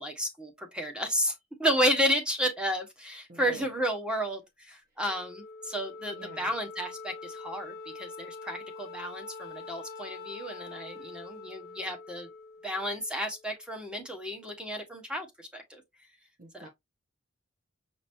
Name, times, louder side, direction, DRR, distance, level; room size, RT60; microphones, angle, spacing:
voice 1, 0.0-12.3 12.6-15.8 16.5-16.7, equal, 5° right, 1.2 m, -32 dB
voice 2, 3.3-3.7 6.1-6.5 16.4-16.7, right 1 dB, 45° right, 0.9 m, -46 dB
Wind instrument woodwind instrument, 5.0-13.6, left 4 dB, 45° left, 0.8 m, -45 dB
6.6 x 3.0 x 2.7 m
head